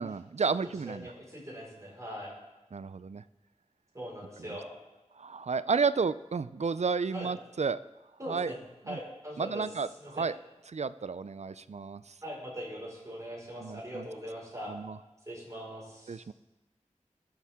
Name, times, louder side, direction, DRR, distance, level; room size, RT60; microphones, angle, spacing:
voice 1, 0.0-1.1 2.7-3.2 5.2-7.8 8.3-8.5 8.9-9.0 9.4-10.3 10.7-12.1 13.6-14.1 14.7-15.0 16.1-16.3, right 5 dB, 60° right, 15 dB, 0.4 m, -32 dB
voice 2, 0.8-2.4 3.9-4.7 7.1-7.3 8.2-8.6 8.9-9.6 10.0-10.3 12.2-14.8 15.2-16.2, equal, 25° right, -4 dB, 4.8 m, -41 dB
20.5 x 7.3 x 3.6 m, 1.1 s
wide cardioid pair, 60°, 13 cm